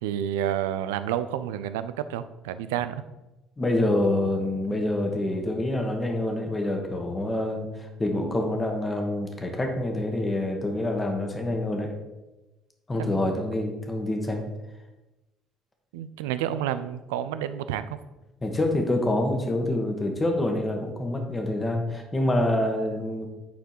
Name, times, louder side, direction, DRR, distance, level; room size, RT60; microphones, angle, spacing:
voice 1, 0.0-3.0 13.0-13.3 15.9-18.0, right 10 dB, 75° right, 12 dB, 0.4 m, -30 dB
voice 2, 3.6-11.9 12.9-14.4 18.4-23.3, left 1 dB, 25° left, 3 dB, 1.7 m, -26 dB
9.3 x 4.4 x 4.4 m, 1.0 s
figure-of-eight pair, 55°, 0 cm